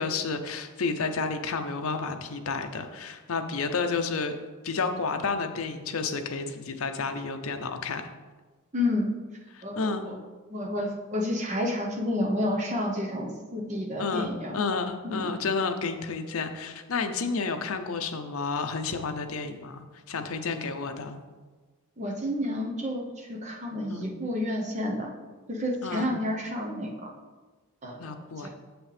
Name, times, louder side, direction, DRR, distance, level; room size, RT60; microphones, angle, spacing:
voice 1, 0.0-4.3 4.6-8.1 9.5-10.1 14.0-21.2 23.9-24.1 25.8-26.2 28.0-28.5, left 4 dB, 70° left, 7 dB, 0.6 m, -31 dB
voice 2, 8.7-9.1 9.6-10.2 10.5-14.5 15.0-15.2 22.0-25.1 25.5-27.1 27.8-28.0 28.4-28.5, left 1 dB, 30° right, 0 dB, 0.9 m, -30 dB
7.3 x 6.0 x 3.4 m, 1.3 s
head